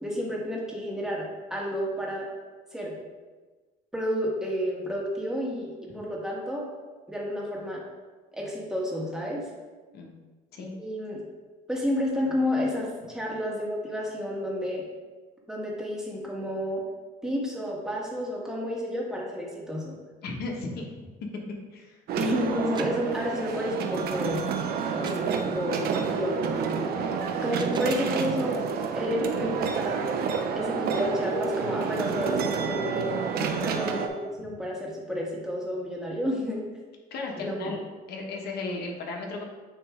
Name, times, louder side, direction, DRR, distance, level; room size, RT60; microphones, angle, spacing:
voice 1, 0.0-2.3 2.7-2.9 3.9-6.7 7.1-7.8 8.3-9.4 10.8-11.2 11.7-14.8 15.5-16.8 17.2-20.0 22.2-24.4 24.9-26.8 27.4-28.6 28.9-30.1 30.6-33.1 33.6-36.6 37.4-37.7, equal, 5° right, -3 dB, 1.7 m, -30 dB
voice 2, 20.2-20.8 21.7-22.0 33.4-33.7 37.1-37.8 38.1-39.4, left 3 dB, 70° left, 0 dB, 1.3 m, -35 dB
sound 1, 22.1-34.1, right 6 dB, 65° right, 0.7 m, -29 dB
sound 2, 22.7-23.1 25.0-25.4 27.3-28.2, right 5 dB, 25° right, 0.4 m, -44 dB
9.0 x 3.1 x 3.7 m, 1.3 s
cardioid pair, 110°, 17 cm